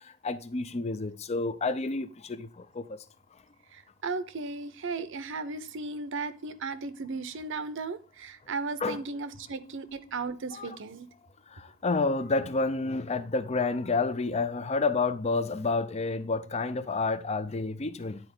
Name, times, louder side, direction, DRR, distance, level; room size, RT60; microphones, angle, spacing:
voice 1, 0.2-2.5 2.8-2.9 8.8-9.0 10.5-10.8 11.8-18.2, left 3 dB, 30° left, 0.5 m, -29 dB
voice 2, 3.7-11.1, right 4 dB, 65° right, 0.7 m, -36 dB
9.8 x 4.5 x 3.8 m
head